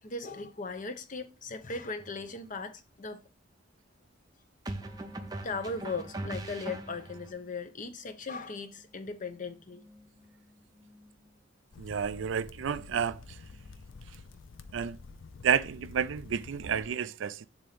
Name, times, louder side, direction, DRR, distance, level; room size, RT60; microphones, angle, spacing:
voice 1, 0.0-3.2 5.4-9.8, left 3 dB, 45° left, 0.8 m, -38 dB
sound 1, 2.0-2.2 4.6-7.3, right 1 dB, 20° right, 0.6 m, -40 dB
sound 2, 4.8-12.2 12.5-16.2, left 1 dB, 10° left, 1.1 m, -61 dB
sound 3, 11.7-16.9, left 4 dB, 80° left, 0.5 m, -49 dB
voice 2, 11.8-13.4 14.7-15.0 15.4-17.5, right 7 dB, 75° right, 0.4 m, -30 dB
7.0 x 2.9 x 5.1 m
head